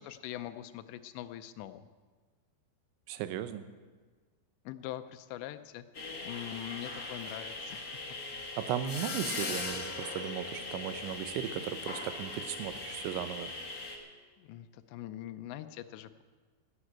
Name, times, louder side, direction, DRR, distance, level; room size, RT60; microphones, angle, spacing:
voice 1, 0.0-1.9 4.7-5.8 6.2-8.0 14.4-16.2, left 13 dB, 80° left, 10 dB, 2.8 m, -43 dB
voice 2, 3.1-3.6 8.6-13.5, right 10 dB, 85° right, 11 dB, 3.2 m, -36 dB
sound 1, 5.9-14.0, left 3 dB, 50° left, 1.0 m, -40 dB
14.5 x 11.0 x 8.7 m, 1.4 s
omnidirectional pair, 5.2 m